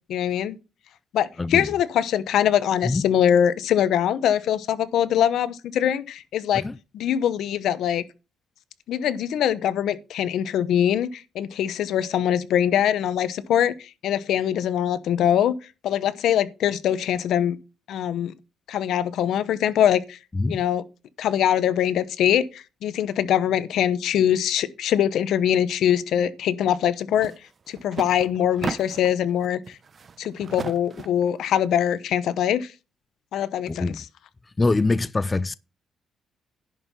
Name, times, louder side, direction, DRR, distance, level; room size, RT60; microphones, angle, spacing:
voice 1, 0.1-0.6 1.1-6.6 6.9-8.0 8.9-15.6 15.8-17.6 17.9-18.3 18.7-20.2 20.5-20.8 21.2-27.3 27.7-29.8 30.2-32.7 33.3-34.0, left 10 dB, 75° left, 0.9 m, -23 dB
sound 1, 27.1-27.4 27.7-29.2 29.7-31.2, right 5 dB, 40° right, 0.8 m, -35 dB
voice 2, 33.7-34.0 34.6-35.5, left 3 dB, 20° left, 0.4 m, -24 dB
11.0 x 5.5 x 5.6 m
cardioid pair, 90°, 0 cm